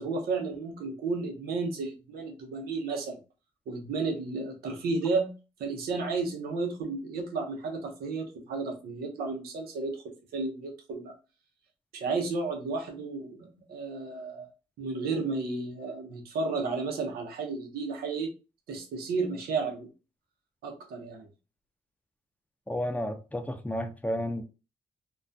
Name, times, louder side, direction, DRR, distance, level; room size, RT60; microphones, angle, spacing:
voice 1, 0.0-3.2 3.7-5.3 5.6-11.1 11.9-14.5 14.8-18.3 18.7-19.9 20.6-21.3, right 4 dB, 85° right, 0.6 m, -32 dB
voice 2, 22.7-24.4, equal, 10° left, 0.5 m, -32 dB
2.2 x 2.2 x 2.5 m
supercardioid pair, 50°, 16 cm